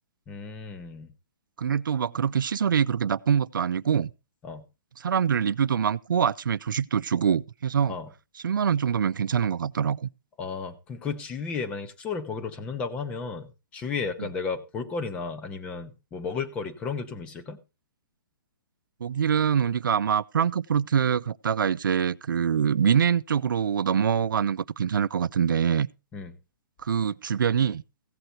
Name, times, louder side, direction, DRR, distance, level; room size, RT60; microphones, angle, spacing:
voice 1, 0.3-1.1 4.4-4.6 7.9-8.1 10.4-17.6 26.1-26.3, left 5 dB, 10° left, 0.6 m, -33 dB
voice 2, 1.6-4.1 5.0-8.0 8.4-10.1 14.2-14.3 19.0-25.9 26.8-27.8, right 7 dB, 85° right, 0.5 m, -24 dB
15.5 x 7.9 x 4.2 m
hypercardioid pair, 170°, 11 cm